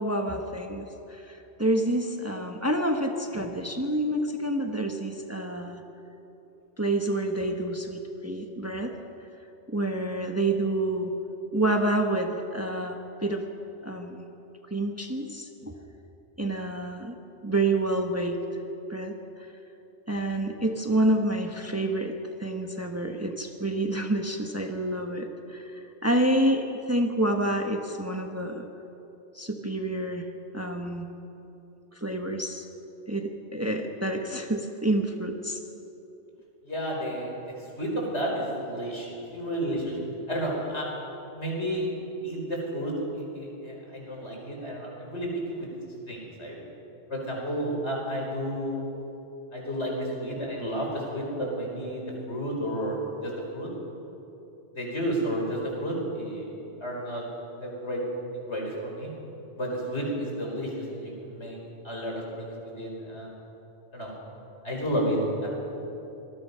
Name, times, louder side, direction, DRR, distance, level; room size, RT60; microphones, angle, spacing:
voice 1, 0.0-5.8 6.8-8.9 9.7-11.1 11.5-13.4 13.8-14.2 14.7-15.7 16.4-17.2 17.4-18.4 18.9-19.1 20.1-22.1 22.4-28.7 29.3-30.3 30.5-31.1 32.0-32.6 33.1-35.6, right 1 dB, 15° right, 3 dB, 1.3 m, -28 dB
voice 2, 36.6-40.0 40.3-40.9 41.3-41.9 42.2-45.7 46.1-46.6 47.1-48.8 49.5-52.0 52.3-53.7 54.8-56.5 56.8-57.2 57.6-58.0 58.5-59.1 59.6-61.6 61.8-63.3 63.9-64.1 64.6-65.5, equal, 75° left, -2 dB, 5.3 m, -31 dB
25.0 x 20.5 x 5.7 m, 3.0 s
omnidirectional pair, 1.1 m